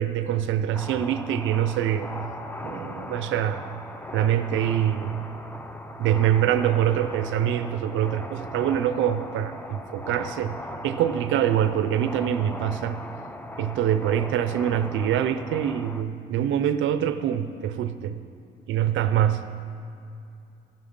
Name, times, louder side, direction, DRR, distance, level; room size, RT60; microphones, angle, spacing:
voice 1, 0.0-2.1 2.6-3.6 4.1-5.2 6.0-10.6 10.8-13.0 13.6-18.2 18.7-19.4, right 10 dB, 80° right, 11 dB, 0.5 m, -24 dB
sound 1, 0.7-16.0, left 1 dB, 10° left, 0.6 m, -39 dB
16.5 x 7.2 x 5.3 m, 2.6 s
cardioid pair, 90°, 20 cm